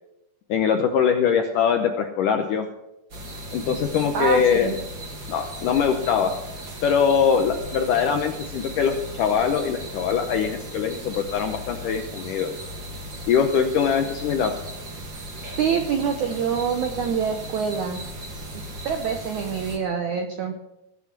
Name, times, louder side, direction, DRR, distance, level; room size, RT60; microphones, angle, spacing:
voice 1, 0.5-2.7 3.5-4.7 5.3-6.3 6.8-12.5 13.3-14.5, left 7 dB, 75° left, 5 dB, 1.9 m, -22 dB
sound 1, 3.1-19.8, equal, 35° right, 2.1 m, -37 dB
voice 2, 4.1-4.8 15.6-18.0 18.8-20.5, right 6 dB, 80° right, 5 dB, 1.7 m, -25 dB
20.0 x 7.3 x 6.0 m, 0.91 s
omnidirectional pair, 4.8 m